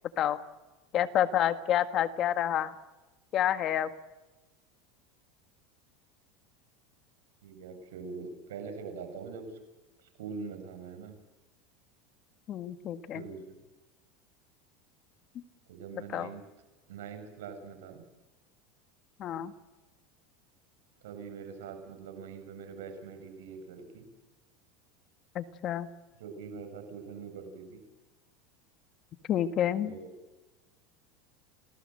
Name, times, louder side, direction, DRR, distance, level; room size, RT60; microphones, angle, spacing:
voice 1, 0.9-2.7 3.3-3.9 12.5-13.2 16.1-16.3 19.2-19.5 25.3-25.9 29.3-29.9, left 11 dB, 40° left, 11 dB, 1.7 m, -28 dB
voice 2, 7.4-9.5 10.0-11.2 13.1-13.6 15.7-16.4 16.9-18.0 21.0-24.0 26.2-27.8 29.8-30.1, right 5 dB, 90° right, 5 dB, 7.2 m, -43 dB
28.5 x 19.0 x 7.9 m, 1.1 s
supercardioid pair, 130°, 0 cm